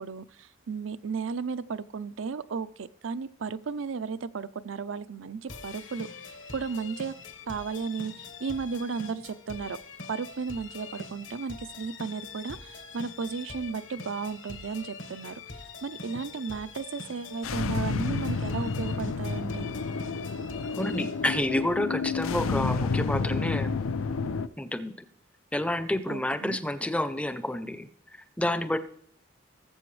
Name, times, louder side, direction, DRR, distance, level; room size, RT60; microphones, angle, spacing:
voice 1, 0.0-7.1 7.5-9.8 10.1-19.7 26.1-26.6, right 5 dB, 75° right, 13 dB, 0.5 m, -34 dB
sound 1, 5.5-21.5, left 4 dB, 70° left, 1.5 m, -44 dB
sound 2, 17.4-24.5, left 4 dB, 85° left, 0.5 m, -30 dB
voice 2, 20.7-23.7 24.6-24.9 25.5-28.8, left 1 dB, 5° left, 11 dB, 0.5 m, -29 dB
19.5 x 7.7 x 3.2 m, 0.65 s
head